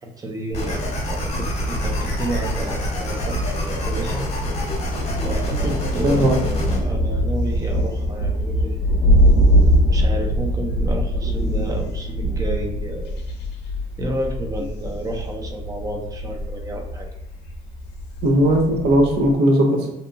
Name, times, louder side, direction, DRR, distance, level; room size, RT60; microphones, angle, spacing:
voice 1, 0.0-4.3 5.2-8.8 9.9-13.1 14.0-17.1, right 1 dB, 20° right, 2 dB, 0.5 m, -31 dB
sound 1, 0.5-6.8, equal, 40° left, 0.9 m, -26 dB
Thunder, 1.3-19.3, equal, 80° left, 0.5 m, -23 dB
voice 2, 6.0-6.4 18.2-19.9, equal, 80° right, 2 dB, 0.6 m, -17 dB
2.7 x 2.2 x 2.5 m, 0.85 s
cardioid pair, 110°, 17 cm